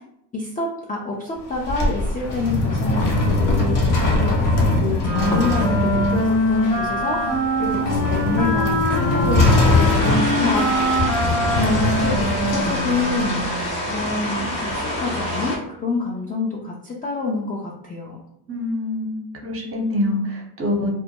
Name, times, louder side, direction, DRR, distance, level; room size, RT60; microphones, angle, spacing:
voice 1, 0.3-3.8 4.2-4.3 4.7-7.2 7.6-11.0 11.5-13.5 13.9-18.2, left 3 dB, 20° left, -3 dB, 0.3 m, -27 dB
sound 1, 1.4-13.3, left 2 dB, 40° left, 0.8 m, -22 dB
Wind instrument woodwind instrument, 5.0-13.6, equal, 80° left, 1.2 m, -23 dB
sound 2, 9.4-15.6, equal, 65° left, 1.1 m, -27 dB
voice 2, 18.5-21.0, left 1 dB, 30° right, 0 dB, 0.7 m, -25 dB
2.2 x 2.1 x 2.8 m, 0.79 s
supercardioid pair, 75°, 47 cm